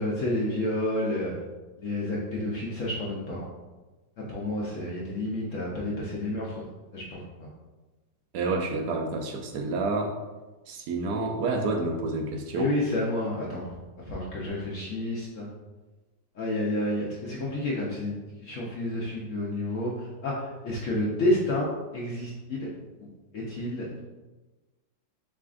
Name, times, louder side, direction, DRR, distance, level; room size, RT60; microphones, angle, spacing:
voice 1, 0.0-1.3 1.8-3.5 4.2-6.6 6.9-7.5 12.6-13.7 14.0-15.5 16.4-21.7 21.9-22.7 23.0-23.1 23.3-24.0, left 1 dB, 65° left, -4 dB, 0.8 m, -30 dB
voice 2, 8.3-10.1 10.7-12.7, right 3 dB, 75° right, 2 dB, 1.0 m, -29 dB
5.0 x 3.5 x 2.4 m, 1.2 s
omnidirectional pair, 2.0 m